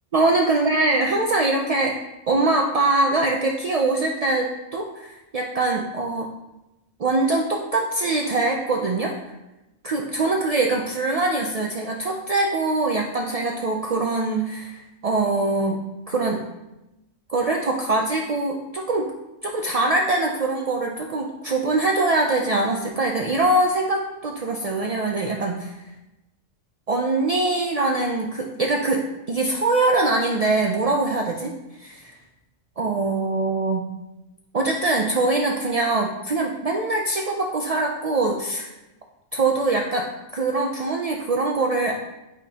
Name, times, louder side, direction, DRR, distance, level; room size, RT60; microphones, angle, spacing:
voice 1, 0.1-2.0 2.3-6.3 7.0-9.2 9.8-16.4 17.3-19.1 19.4-25.7 26.9-31.5 31.8-32.1 32.8-33.9 34.5-38.7 39.3-42.0, right 2 dB, 55° right, 1 dB, 0.4 m, -23 dB
9.2 x 5.1 x 2.8 m, 0.98 s
omnidirectional pair, 1.3 m